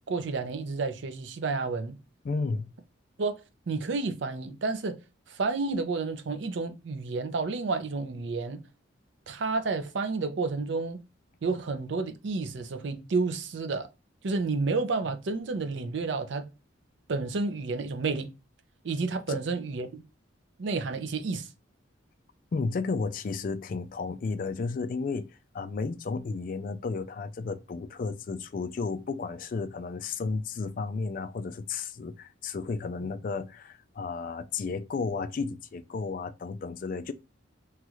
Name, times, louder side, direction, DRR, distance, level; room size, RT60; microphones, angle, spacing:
voice 1, 0.1-2.0 3.2-3.4 3.7-5.0 5.3-8.6 9.3-11.0 11.4-13.9 14.2-16.5 17.1-18.3 18.8-20.0 20.6-21.5, right 3 dB, 65° right, 0.5 m, -30 dB
voice 2, 2.2-2.7 19.3-19.4 22.5-37.1, left 4 dB, 45° left, 0.3 m, -33 dB
3.1 x 2.4 x 2.9 m
head